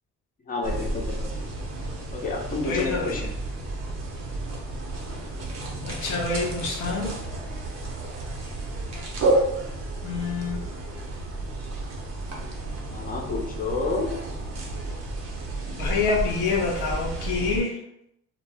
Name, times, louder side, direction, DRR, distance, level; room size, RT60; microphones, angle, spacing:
voice 1, 0.5-1.4 2.1-3.3 12.9-14.2, left 3 dB, 30° left, -2 dB, 0.7 m, -30 dB
sound 1, 0.6-17.6, right 2 dB, 60° right, 0.8 m, -31 dB
voice 2, 2.6-3.3 5.9-7.2 10.0-10.7 15.7-17.8, left 4 dB, 85° left, -1 dB, 0.6 m, -27 dB
2.2 x 2.0 x 3.3 m, 0.79 s
cardioid pair, 90°, 30 cm